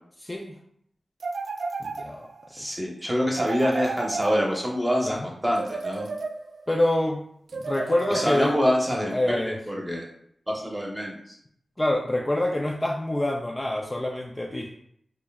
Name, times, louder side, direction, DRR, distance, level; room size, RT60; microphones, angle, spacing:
voice 1, 0.2-0.5 1.8-2.3 2.6-2.7 5.1-5.3 6.7-7.2 7.5-8.5 9.1-9.6 11.8-14.7, left 1 dB, 20° left, 0 dB, 0.4 m, -26 dB
sound 1, 1.2-2.5 3.3-4.9 5.6-6.7 7.5-8.7, right 3 dB, 75° right, 0.3 m, -33 dB
voice 2, 2.5-5.2 5.4-6.1 8.1-10.0 10.5-11.2, equal, 10° right, -1 dB, 1.0 m, -26 dB
4.4 x 3.1 x 2.3 m, 0.69 s
wide cardioid pair, 80°, 0 cm